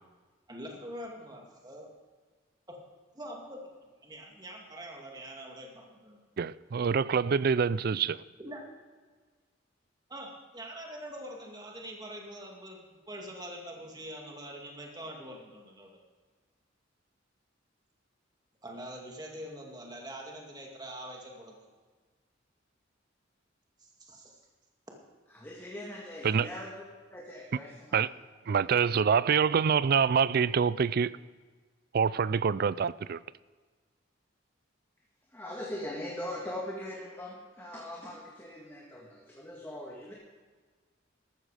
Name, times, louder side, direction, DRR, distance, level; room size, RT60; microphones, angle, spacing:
voice 1, 0.5-1.9 3.1-3.6 4.0-6.2 8.4-8.6 10.1-15.9 18.6-21.5 23.8-24.4, right 1 dB, 20° right, 2.3 m, -44 dB
voice 2, 6.4-8.2 26.2-26.5 27.9-28.1 28.5-31.1 31.9-33.2, right 6 dB, 50° right, 0.4 m, -26 dB
voice 3, 25.3-26.7 27.1-28.1 28.5-28.6 35.3-40.1, left 1 dB, 10° left, 1.8 m, -41 dB
14.0 x 13.5 x 5.0 m
head